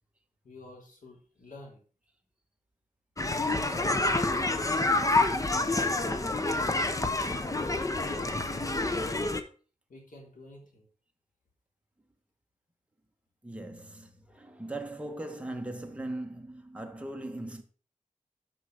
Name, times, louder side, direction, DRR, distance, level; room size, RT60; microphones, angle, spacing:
voice 1, 0.4-1.8 3.4-4.7 6.6-9.2 9.9-10.9, left 1 dB, 90° left, 3.6 m, -48 dB
sound 1, 3.2-9.4, left 2 dB, 25° left, 0.9 m, -28 dB
voice 2, 13.4-17.6, right 1 dB, 10° right, 1.6 m, -39 dB
12.5 x 5.9 x 5.0 m
wide cardioid pair, 115°, 14 cm